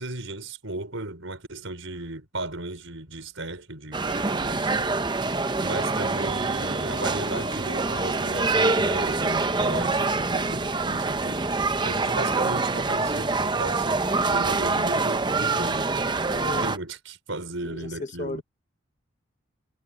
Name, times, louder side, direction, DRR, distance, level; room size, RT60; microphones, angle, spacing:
voice 1, 0.0-5.0 5.6-11.4 11.8-14.0 14.3-18.4, right 2 dB, 75° right, 5.4 m, -36 dB
sound 1, 3.9-16.8, right 3 dB, 20° right, 0.7 m, -25 dB
Female speech woman speaking / Yell, 4.0-5.2 5.7-8.4, left 4 dB, 65° left, 2.7 m, -45 dB
voice 2, 16.3-16.7 17.6-18.4, left 2 dB, 35° left, 1.0 m, -34 dB
head